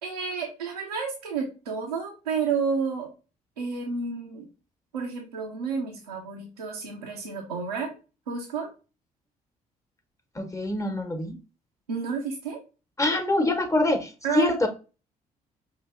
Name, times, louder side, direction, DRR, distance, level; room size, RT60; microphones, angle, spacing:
voice 1, 0.0-3.1 3.6-4.5 4.9-7.9 8.3-8.7 11.9-12.6 14.2-14.5, right 5 dB, 90° right, -3 dB, 0.7 m, -30 dB
voice 2, 10.3-11.4 13.0-14.7, left 2 dB, 15° left, 7 dB, 1.2 m, -25 dB
5.6 x 2.8 x 2.5 m, 0.32 s
figure-of-eight pair, 45°, 19 cm